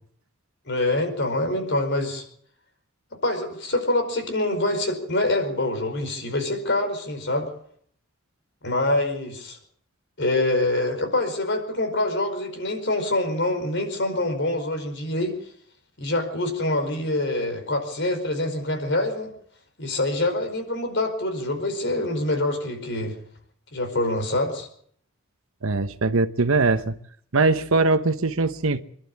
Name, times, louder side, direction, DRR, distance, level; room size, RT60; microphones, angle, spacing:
voice 1, 0.7-2.2 3.2-7.5 8.6-9.6 10.2-15.4 16.0-19.3 19.8-23.1 23.7-24.7, left 2 dB, 55° left, 5.0 m, -25 dB
voice 2, 25.6-26.9 27.3-28.8, right 3 dB, 75° right, 1.0 m, -21 dB
26.5 x 11.5 x 8.6 m
head